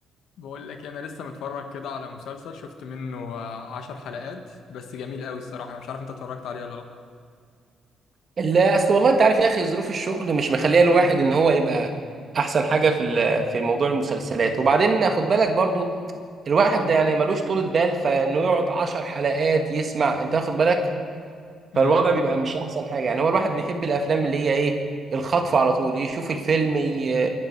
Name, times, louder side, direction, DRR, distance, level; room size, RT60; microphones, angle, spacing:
voice 1, 0.4-6.9 21.7-22.0, left 5 dB, 80° left, 6 dB, 1.5 m, -35 dB
voice 2, 8.4-11.9 12.3-15.9 16.5-20.9 21.8-24.8 25.1-27.3, right 4 dB, 45° right, 5 dB, 1.7 m, -21 dB
24.0 x 11.0 x 4.7 m, 2.1 s
cardioid pair, 90°, 0 cm